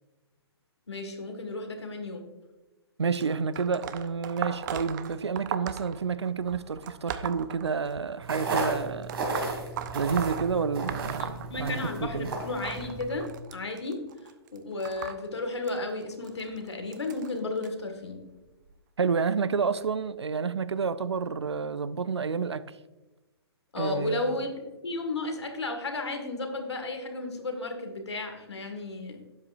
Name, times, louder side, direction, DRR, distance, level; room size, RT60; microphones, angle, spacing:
voice 1, 0.9-2.2 11.2-13.3 13.5-14.0 14.5-18.2 23.7-24.5 24.8-29.2, left 2 dB, 80° left, 1.9 m, -33 dB
voice 2, 3.0-9.2 9.9-12.3 19.0-22.6 23.8-24.4, right 5 dB, 85° right, 0.5 m, -29 dB
sound 1, 3.1-8.3 9.0-12.1 12.3-17.7 18.5-18.7 19.8-19.9 20.8-20.9 21.6-21.7, right 10 dB, 45° right, 0.7 m, -38 dB
sound 2, 8.2-13.3, right 2 dB, 60° right, 2.8 m, -34 dB
12.5 x 8.7 x 2.6 m
figure-of-eight pair, 125°, 14 cm